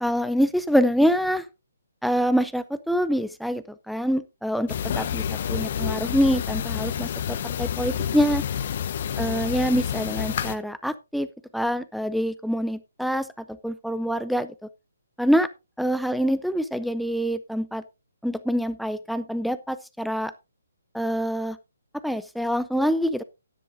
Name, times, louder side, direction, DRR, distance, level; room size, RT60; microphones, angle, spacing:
voice 1, 0.0-1.4 2.0-5.2 5.5-8.4 9.2-11.3 11.5-14.5 15.2-15.5 15.8-17.8 18.2-20.3 20.9-21.6 22.0-23.2, equal, ahead, 13 dB, 0.4 m, -25 dB
sound 1, 4.7-10.5, left 8 dB, 45° left, 1.0 m, -28 dB
13.5 x 9.9 x 2.6 m, 0.26 s
hypercardioid pair, 155°, 0 cm